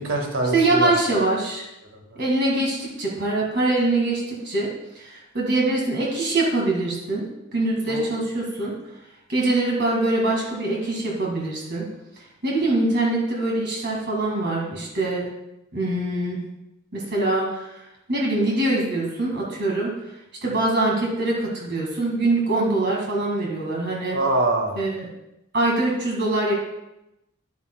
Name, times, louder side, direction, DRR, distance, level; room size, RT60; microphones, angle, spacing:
voice 1, 0.0-0.9 1.8-2.2 7.9-8.1 24.1-24.8, right 2 dB, 75° right, 1 dB, 1.6 m, -24 dB
voice 2, 0.5-1.6 2.2-4.7 5.0-7.2 7.5-8.7 9.3-11.9 12.4-15.3 15.7-16.4 16.9-17.8 18.1-19.9 20.4-24.2 24.8-25.1 25.5-26.5, right 2 dB, 55° right, -2 dB, 1.8 m, -23 dB
10.0 x 8.5 x 2.2 m, 0.89 s
head